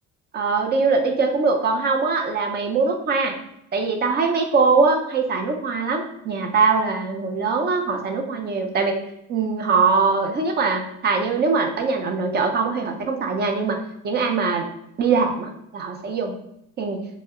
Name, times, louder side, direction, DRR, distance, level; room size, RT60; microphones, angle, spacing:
voice 1, 0.3-3.3 3.7-9.0 9.3-13.8 14.0-14.6 15.0-16.3 16.8-17.0, right 4 dB, 30° right, 4 dB, 0.4 m, -22 dB
2.7 x 2.1 x 3.5 m, 0.78 s
cardioid pair, 125°, 33 cm